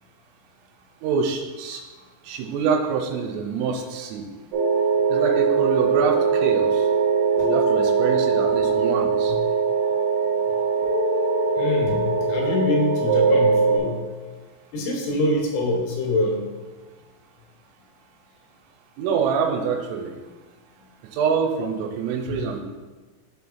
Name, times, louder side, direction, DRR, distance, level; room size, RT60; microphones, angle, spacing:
voice 1, 1.0-1.8 2.2-4.2 5.1-6.8 7.5-9.3 19.0-20.2 21.1-22.6, right 6 dB, 90° right, 1 dB, 3.3 m, -25 dB
sound 1, 4.5-13.8, right 5 dB, 70° right, 1.9 m, -21 dB
voice 2, 11.6-14.0 14.7-16.4 22.3-22.4, left 2 dB, 80° left, 1 dB, 3.1 m, -24 dB
11.5 x 4.2 x 2.3 m, 1.3 s
omnidirectional pair, 5.7 m